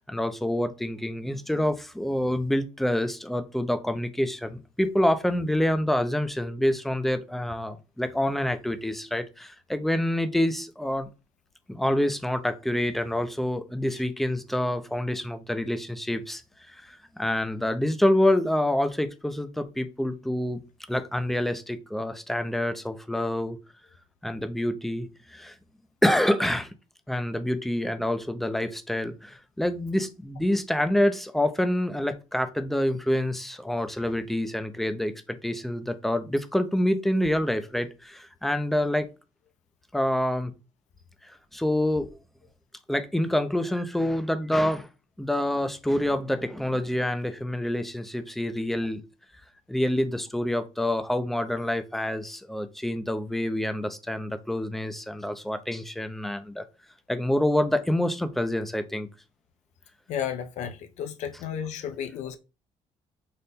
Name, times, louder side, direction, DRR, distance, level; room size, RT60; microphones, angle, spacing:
voice 1, 0.1-11.1 11.7-20.6 20.9-23.6 24.2-25.6 26.0-26.7 27.1-39.1 39.9-40.5 41.2-42.1 42.9-44.9 45.2-49.0 49.7-56.7 57.1-59.1, left 1 dB, ahead, 0.4 m, -27 dB
voice 2, 60.1-62.4, left 8 dB, 70° left, 0.5 m, -33 dB
4.1 x 2.1 x 3.4 m
cardioid pair, 120°, 13 cm